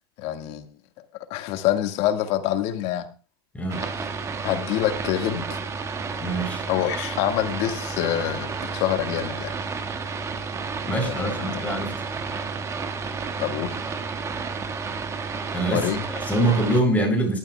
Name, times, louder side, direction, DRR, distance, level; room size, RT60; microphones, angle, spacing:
voice 1, 0.2-0.6 1.3-3.1 3.8-3.9 4.4-5.4 6.7-9.6 11.1-11.6 13.4-13.7 15.7-16.0 16.9-17.0, left 12 dB, 50° left, 1.9 m, -26 dB
sound 1, 3.7-16.8, right 5 dB, 20° right, 1.8 m, -31 dB
voice 2, 6.2-6.6 10.8-11.9 15.5-15.9 16.1-17.4, right 1 dB, 10° left, 7.0 m, -24 dB
19.0 x 13.0 x 2.4 m
hypercardioid pair, 110°, 13 cm